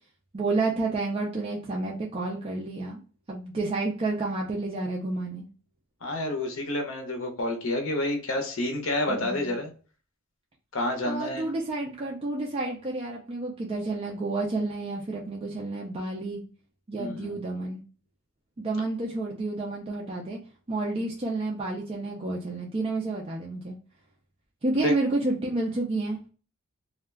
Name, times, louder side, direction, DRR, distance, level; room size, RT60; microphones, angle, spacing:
voice 1, 0.3-3.0 3.3-5.5 9.1-9.5 11.0-16.4 16.9-17.8 18.6-20.4 20.7-23.8 24.6-26.3, right 2 dB, 25° right, -2 dB, 0.4 m, -30 dB
voice 2, 6.0-9.7 10.7-11.4 17.0-17.4 24.8-24.9, left 1 dB, 70° left, 5 dB, 0.7 m, -29 dB
2.3 x 2.1 x 3.2 m, 0.38 s
head